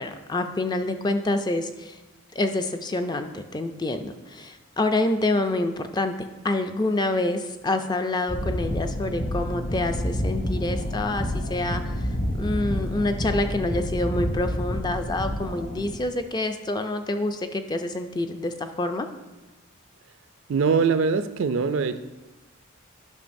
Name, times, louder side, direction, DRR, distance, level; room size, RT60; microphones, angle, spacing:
voice 1, 0.0-2.0 2.4-6.1 6.4-19.1, left 2 dB, 20° left, 7 dB, 0.3 m, -27 dB
sound 1, 8.3-16.0, equal, 50° left, 1.4 m, -29 dB
voice 2, 20.5-22.0, right 5 dB, 65° right, 11 dB, 0.4 m, -22 dB
11.5 x 5.7 x 2.6 m, 1.1 s
head